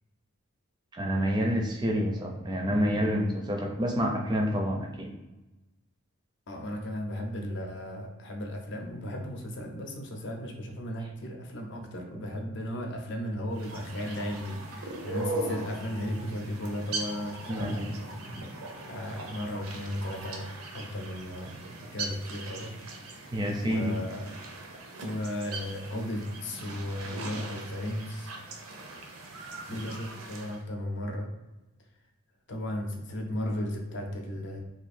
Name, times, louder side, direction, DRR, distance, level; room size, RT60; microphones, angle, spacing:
voice 1, 0.9-5.1 12.1-12.2 17.5-17.9 18.3-18.5 23.3-23.9 26.7-26.8, equal, 20° right, 1 dB, 0.4 m, -28 dB
voice 2, 6.5-17.8 18.9-21.6 21.9-22.7 23.6-24.4 25.0-28.3 29.7-31.3 32.5-34.6, left 1 dB, 55° left, 2 dB, 0.7 m, -35 dB
sound 1, 13.5-30.6, right 2 dB, 90° right, 0.7 m, -40 dB
2.8 x 2.5 x 4.1 m, 1.1 s
head